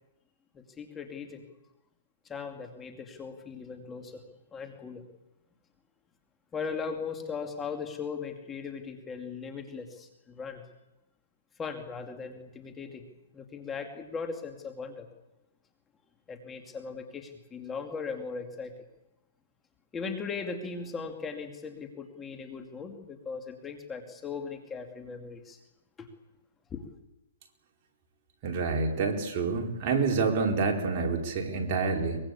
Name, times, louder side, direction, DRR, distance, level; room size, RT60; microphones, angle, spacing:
voice 1, 0.5-1.4 2.2-4.2 4.5-5.0 6.5-10.6 11.6-13.0 13.3-15.1 16.3-18.7 19.9-25.6 26.0-26.1 26.7-26.9, left 5 dB, 15° left, 4 dB, 2.5 m, -38 dB
voice 2, 28.4-32.2, right 4 dB, 35° right, 1 dB, 4.5 m, -28 dB
23.5 x 22.5 x 8.5 m, 0.92 s
hypercardioid pair, 145°, 0 cm